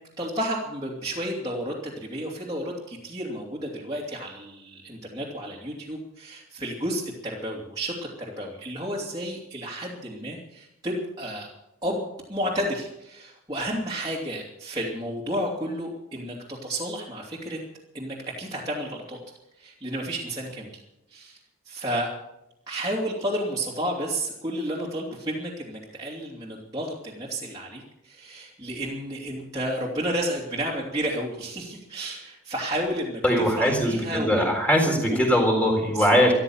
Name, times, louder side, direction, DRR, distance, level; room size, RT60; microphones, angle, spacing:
voice 1, 0.2-7.9 8.4-11.5 11.8-17.6 17.9-19.2 19.6-20.8 21.1-21.4 21.7-22.1 22.7-34.5 35.0-35.3 35.9-36.2, right 1 dB, 20° right, -5 dB, 2.8 m, -31 dB
voice 2, 33.2-36.3, equal, 5° left, 1 dB, 4.0 m, -21 dB
14.0 x 13.0 x 7.2 m, 0.86 s
head